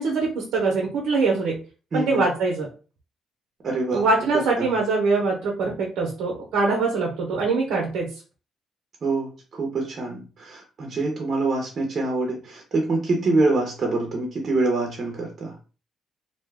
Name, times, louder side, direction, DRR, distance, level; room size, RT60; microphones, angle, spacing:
voice 1, 0.0-1.6 1.9-2.7 3.9-8.1, right 3 dB, 90° right, 0 dB, 0.7 m, -23 dB
voice 2, 1.9-2.2 3.6-4.0 4.3-4.7 9.0-15.5, right 2 dB, 45° right, 1 dB, 0.8 m, -25 dB
2.7 x 2.2 x 3.3 m, 0.35 s
cardioid pair, 90°, 0 cm